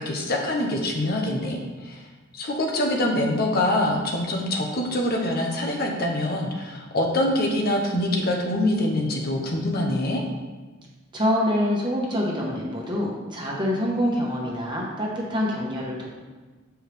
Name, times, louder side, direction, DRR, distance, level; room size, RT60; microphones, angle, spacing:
voice 1, 0.0-2.1 2.3-10.2, left 1 dB, 50° left, 1 dB, 0.9 m, -25 dB
voice 2, 11.1-16.1, equal, 25° right, -3 dB, 1.3 m, -25 dB
7.7 x 4.6 x 3.4 m, 1.3 s
head